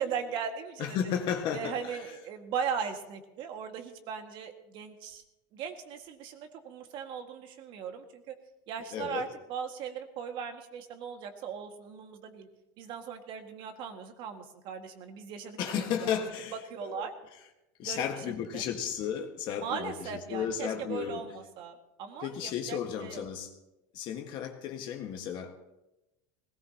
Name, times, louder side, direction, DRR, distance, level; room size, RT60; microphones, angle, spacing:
voice 1, 0.0-1.0 1.5-5.2 5.5-8.3 8.7-12.5 12.8-16.1 16.7-17.1 17.8-18.0 18.5-18.6 19.6-23.3, right 7 dB, 50° right, 5 dB, 1.9 m, -38 dB
voice 2, 0.8-2.0 8.9-9.3 15.6-17.1 17.8-21.2 22.2-23.5 23.9-25.6, left 8 dB, 45° left, 3 dB, 1.6 m, -34 dB
19.5 x 18.5 x 2.9 m, 0.95 s
cardioid pair, 150°, 11 cm